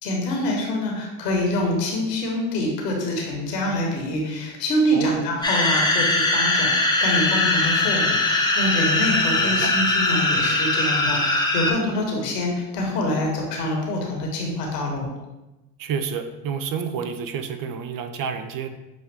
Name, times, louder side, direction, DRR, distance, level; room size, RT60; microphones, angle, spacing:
voice 1, 0.0-15.1, left 1 dB, 85° left, 0 dB, 1.1 m, -25 dB
voice 2, 4.9-5.3 9.4-9.7 15.8-18.7, right 6 dB, 45° right, 8 dB, 0.5 m, -29 dB
sound 1, 5.4-11.7, left 2 dB, 10° left, 0.7 m, -21 dB
6.0 x 2.4 x 3.4 m, 1.0 s
hypercardioid pair, 60°, 47 cm